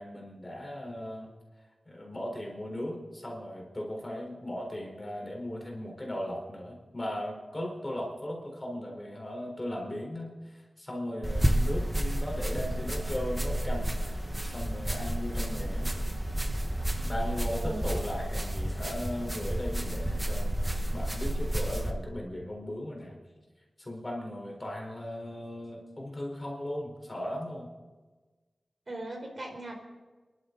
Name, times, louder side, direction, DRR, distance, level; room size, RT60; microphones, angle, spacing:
voice 1, 0.0-1.3 1.9-15.9 17.0-20.6 20.9-23.2 23.8-27.7, left 1 dB, 25° left, 0 dB, 4.2 m, -37 dB
sound 1, 11.2-21.9, right 1 dB, 10° right, 1.3 m, -31 dB
voice 2, 28.9-29.7, right 1 dB, 45° right, 1 dB, 4.2 m, -38 dB
28.0 x 11.5 x 4.0 m, 1.3 s
wide cardioid pair, 100°, 0 cm